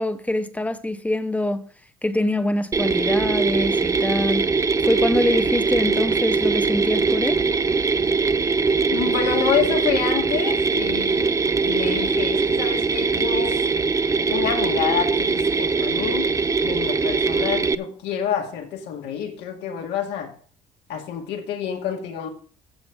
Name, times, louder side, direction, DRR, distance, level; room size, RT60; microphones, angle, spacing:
voice 1, 0.0-1.7 2.0-4.5 4.8-7.4, left 1 dB, 10° left, 0.8 m, -24 dB
Mechanisms, 2.7-17.8, right 4 dB, 20° right, 0.5 m, -21 dB
voice 2, 8.9-11.3 11.6-13.6 14.3-16.3 16.6-20.3 20.9-22.3, left 8 dB, 90° left, 2.3 m, -27 dB
15.5 x 6.7 x 3.6 m
cardioid pair, 110°, 17 cm